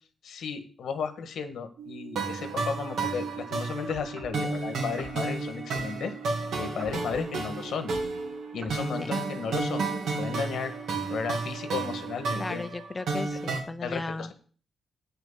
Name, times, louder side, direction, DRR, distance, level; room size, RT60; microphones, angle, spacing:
voice 1, 0.2-7.9 8.5-9.9 10.2-10.7 11.1-12.6 13.8-14.3, left 6 dB, 80° left, 8 dB, 1.6 m, -34 dB
sound 1, 1.8-12.6, right 8 dB, 70° right, 0.7 m, -44 dB
sound 2, 2.2-13.6, right 3 dB, 90° right, 2.7 m, -32 dB
sound 3, 3.9-4.4 5.0-5.2 5.7-5.9 6.8-7.3 7.9-8.1 8.6-8.8, right 3 dB, 55° right, 2.4 m, -44 dB
voice 2, 12.3-14.3, left 2 dB, 20° left, 8 dB, 0.6 m, -35 dB
9.0 x 6.2 x 7.3 m, 0.43 s
wide cardioid pair, 130°, 0 cm